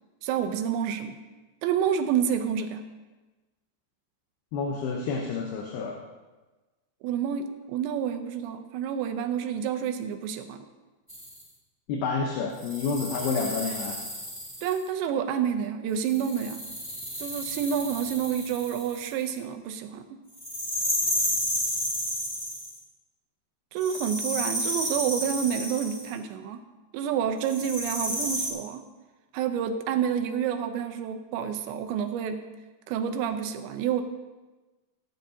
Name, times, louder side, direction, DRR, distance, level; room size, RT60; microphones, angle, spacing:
voice 1, 0.2-1.2 1.6-2.8 7.0-10.6 14.6-16.6 17.2-20.0 23.7-26.6 26.9-28.8 29.3-32.4 32.9-34.0, right 8 dB, 85° right, 7 dB, 3.1 m, -29 dB
voice 2, 4.5-6.0 11.9-14.0, left 4 dB, 75° left, 0 dB, 2.8 m, -29 dB
sound 1, 11.1-11.4 12.6-14.8 16.0-19.2 20.4-22.8 23.8-26.1 27.4-28.5, equal, 25° left, 0.4 m, -32 dB
17.0 x 10.5 x 2.8 m, 1.2 s
omnidirectional pair, 5.0 m